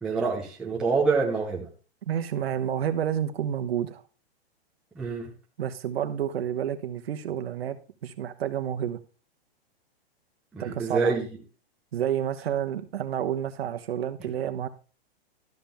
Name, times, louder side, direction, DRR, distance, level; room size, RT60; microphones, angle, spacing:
voice 1, 0.0-1.7 5.0-5.3 10.5-11.3, right 4 dB, ahead, 0.6 m, -26 dB
voice 2, 2.1-4.0 5.6-9.0 10.6-11.2 11.9-14.7, right 9 dB, 70° right, 1.1 m, -29 dB
12.0 x 7.3 x 3.5 m
hypercardioid pair, 175°, 31 cm